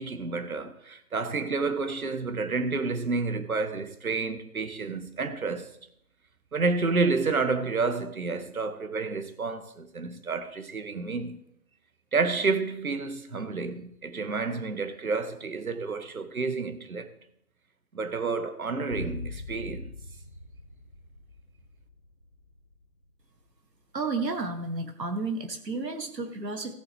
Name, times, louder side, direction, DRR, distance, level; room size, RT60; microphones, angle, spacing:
voice 1, 0.0-5.7 6.5-11.4 12.1-17.1 17.9-19.9, right 4 dB, 60° right, 1.4 m, -30 dB
sound 1, 18.9-23.1 23.4-23.5, left 2 dB, 30° left, 0.8 m, -41 dB
voice 2, 23.9-26.7, right 3 dB, 80° right, 1.7 m, -32 dB
17.5 x 7.3 x 3.5 m
figure-of-eight pair, 165°, 49 cm